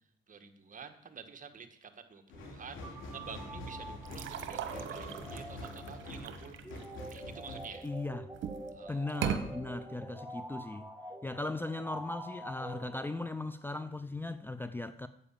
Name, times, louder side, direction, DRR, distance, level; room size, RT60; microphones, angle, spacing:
voice 1, 0.3-6.6 7.1-7.9 8.7-9.2, right 6 dB, 40° right, 1.6 m, -49 dB
sound 1, 2.3-8.8 9.3-9.4, left 1 dB, 80° left, 2.8 m, -46 dB
sound 2, 2.8-13.6, right 1 dB, 10° right, 2.1 m, -47 dB
sound 3, 4.0-7.9 8.3-8.7 9.1-9.4, right 8 dB, 75° right, 1.2 m, -38 dB
voice 2, 7.8-8.3 8.9-10.9 11.2-15.1, left 2 dB, 10° left, 0.5 m, -38 dB
10.0 x 8.2 x 7.4 m
cardioid pair, 90°, 20 cm